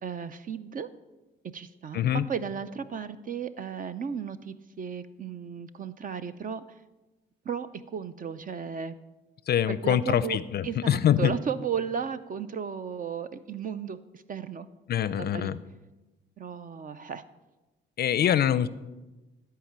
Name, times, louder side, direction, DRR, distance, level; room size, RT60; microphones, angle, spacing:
voice 1, 0.0-0.9 1.4-6.6 7.4-8.9 9.7-14.7 15.2-15.5 16.4-17.2, right 7 dB, 45° right, 13 dB, 0.5 m, -35 dB
voice 2, 1.9-2.2 9.5-11.3 14.9-15.6 18.0-18.7, left 10 dB, 55° left, 16 dB, 0.4 m, -24 dB
13.5 x 4.7 x 7.3 m, 1.1 s
cardioid pair, 90°, 20 cm